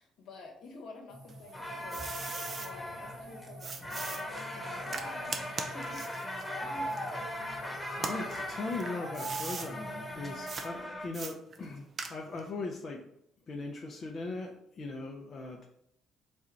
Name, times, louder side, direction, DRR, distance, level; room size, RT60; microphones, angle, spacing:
voice 1, 0.0-2.1 2.5-7.2 8.0-8.4, left 3 dB, 70° left, 0 dB, 1.1 m, -50 dB
sound 1, 1.1-10.6, equal, 90° right, 1.4 m, -48 dB
sound 2, 1.3-2.7 3.6-7.5 7.9-9.7 10.5-10.7 11.1-12.5, right 4 dB, 50° right, 0.6 m, -40 dB
sound 3, 1.5-11.1, equal, 15° left, 1.2 m, -39 dB
voice 2, 8.0-13.1 13.5-15.7, left 3 dB, 50° left, 1 dB, 0.6 m, -39 dB
4.3 x 2.4 x 4.4 m, 0.75 s
hypercardioid pair, 55°, 0 cm